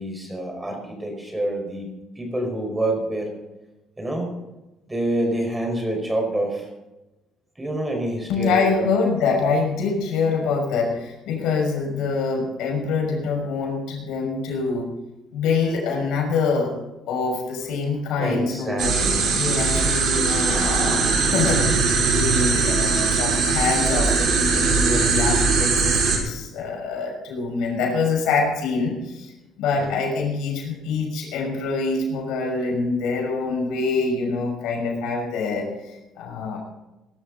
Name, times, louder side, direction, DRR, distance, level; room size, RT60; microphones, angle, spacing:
voice 1, 0.0-1.9 2.1-3.3 4.0-4.3 4.9-6.7 7.6-8.9 18.2-19.3 29.8-30.0, right 1 dB, 10° right, 2 dB, 4.9 m, -27 dB
voice 2, 8.3-14.9 15.3-16.7 17.1-18.9 19.3-29.3 29.6-36.6, left 4 dB, 80° left, 1 dB, 5.9 m, -25 dB
sound 1, 18.8-26.2, right 4 dB, 65° right, 5.0 m, -20 dB
20.0 x 12.5 x 4.0 m, 1.0 s
cardioid pair, 120°, 0 cm